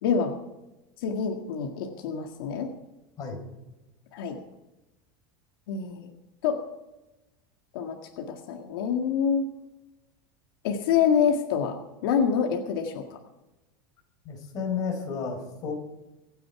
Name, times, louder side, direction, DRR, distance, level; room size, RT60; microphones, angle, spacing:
voice 1, 0.0-0.3 1.0-2.7 4.1-4.4 5.7-6.1 6.4-6.6 7.7-9.5 10.6-11.8 12.0-13.2, left 7 dB, 75° left, 3 dB, 1.9 m, -26 dB
voice 2, 14.2-15.7, left 6 dB, 30° left, 1 dB, 4.7 m, -32 dB
25.0 x 9.3 x 4.8 m, 1.0 s
supercardioid pair, 165°, 12 cm